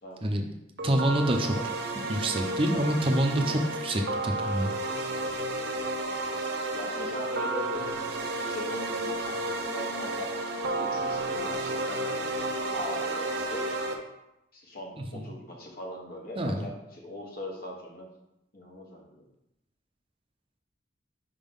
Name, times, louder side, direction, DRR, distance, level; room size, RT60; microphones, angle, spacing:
voice 1, 0.8-1.6 2.1-4.7 15.0-15.2 16.4-16.7, right 1 dB, 30° right, 3 dB, 0.6 m, -27 dB
sound 1, 0.8-13.9, right 2 dB, 60° right, 0.8 m, -32 dB
voice 2, 6.7-7.9 8.4-10.4 10.8-12.3 12.7-13.7 14.5-18.1 18.5-19.3, left 1 dB, 55° left, -1 dB, 1.3 m, -40 dB
5.1 x 3.6 x 5.3 m, 0.87 s
head